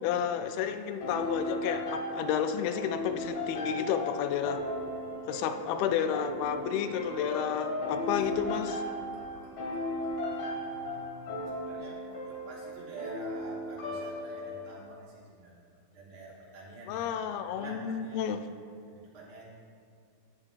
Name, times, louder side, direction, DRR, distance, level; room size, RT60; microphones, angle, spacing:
voice 1, 0.0-4.6 5.3-8.8 16.9-18.4, left 8 dB, 85° left, 8 dB, 2.4 m, -31 dB
sound 1, 1.0-14.7, left 1 dB, 60° left, 2.4 m, -36 dB
sound 2, 3.1-13.4 14.0-14.1, right 3 dB, 90° right, 3.0 m, -54 dB
voice 2, 10.5-11.2 11.4-17.1 17.4-18.3 18.9-19.5, right 2 dB, 70° right, -5 dB, 1.2 m, -48 dB
14.5 x 9.1 x 2.4 m, 2.2 s
omnidirectional pair, 4.2 m